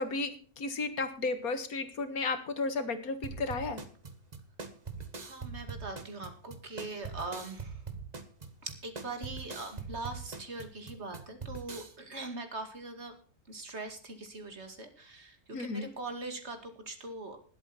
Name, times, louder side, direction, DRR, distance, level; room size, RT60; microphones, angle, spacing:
voice 1, 0.0-3.8 15.5-15.9, left 3 dB, 70° left, 10 dB, 2.1 m, -33 dB
sound 1, 3.2-11.9, right 5 dB, 30° right, 1.3 m, -42 dB
voice 2, 5.2-7.8 8.6-13.1 13.5-17.4, right 2 dB, 45° right, 7 dB, 2.5 m, -42 dB
20.0 x 8.2 x 4.2 m, 0.40 s
omnidirectional pair, 1.6 m